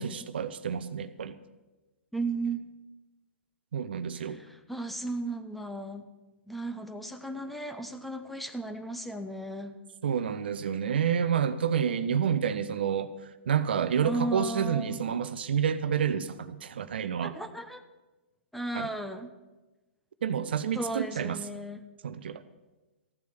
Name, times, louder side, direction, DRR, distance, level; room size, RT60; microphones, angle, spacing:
voice 1, 0.0-1.3 3.7-4.4 10.0-13.1 13.5-17.3 18.7-18.9 20.2-21.4 22.0-22.4, right 8 dB, 55° right, 13 dB, 0.7 m, -29 dB
voice 2, 2.1-2.7 4.1-6.0 6.5-9.7 14.0-15.0 17.2-17.8 18.5-19.3 20.7-21.8, right 2 dB, ahead, 8 dB, 0.8 m, -35 dB
15.0 x 11.5 x 6.1 m, 1.1 s
figure-of-eight pair, 115°, 7 cm